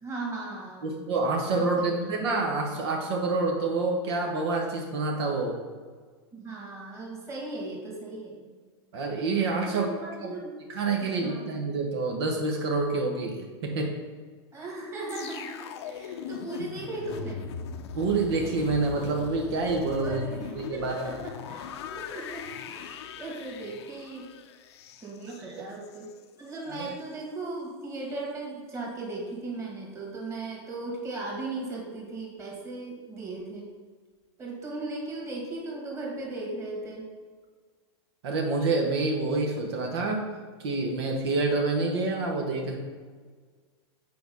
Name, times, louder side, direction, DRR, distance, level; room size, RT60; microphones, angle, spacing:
voice 1, 0.0-1.0 1.5-2.3 6.3-8.5 9.6-10.5 11.0-11.4 14.5-17.5 20.0-21.6 21.9-24.3 25.0-26.1 26.4-33.7 34.4-37.1, right 2 dB, 20° right, -2 dB, 2.1 m, -37 dB
voice 2, 0.8-5.6 8.9-9.9 10.2-10.3 10.7-13.9 17.9-20.2 20.5-21.2 25.5-25.6 26.7-26.9 38.2-40.3 40.6-42.8, right 3 dB, 70° right, 1 dB, 1.3 m, -27 dB
sound 1, 15.1-26.2 26.5-26.7, left 7 dB, 70° left, 0.7 m, -40 dB
6.9 x 4.9 x 5.4 m, 1.5 s
supercardioid pair, 130°, 14 cm